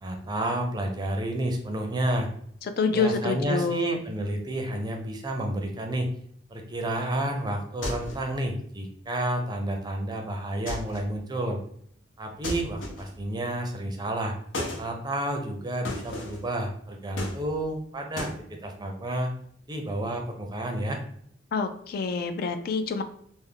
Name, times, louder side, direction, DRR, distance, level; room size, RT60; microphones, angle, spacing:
voice 1, 0.0-2.3 2.9-6.1 6.5-11.6 12.2-14.4 14.8-19.3 19.7-21.0, right 1 dB, 20° right, 3 dB, 0.5 m, -30 dB
voice 2, 2.8-4.0 21.5-23.0, left 4 dB, 55° left, 9 dB, 0.3 m, -27 dB
sound 1, 7.8-8.3 10.7-11.1 12.4-13.2 14.5-14.9 15.8-16.5 17.2-17.8 18.2-18.4, left 1 dB, 90° left, 0.8 m, -34 dB
3.4 x 2.0 x 3.6 m, 0.65 s
head